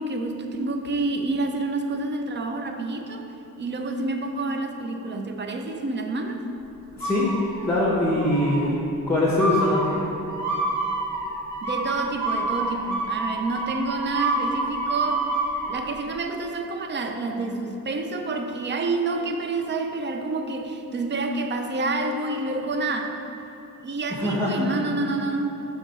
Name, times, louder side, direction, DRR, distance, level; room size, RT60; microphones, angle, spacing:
voice 1, 0.0-3.3 3.6-6.4 11.6-15.3 15.7-23.1 23.8-25.7, right 3 dB, 30° right, 5 dB, 0.4 m, -28 dB
voice 2, 6.9-7.3 7.6-8.8 9.1-10.0 24.1-24.5, left 1 dB, 10° left, -5 dB, 0.8 m, -22 dB
sound 1, 7.0-7.8 8.1-8.7 9.4-15.7, right 2 dB, 50° right, 1.0 m, -28 dB
7.0 x 3.6 x 5.6 m, 2.9 s
wide cardioid pair, 170°, 36 cm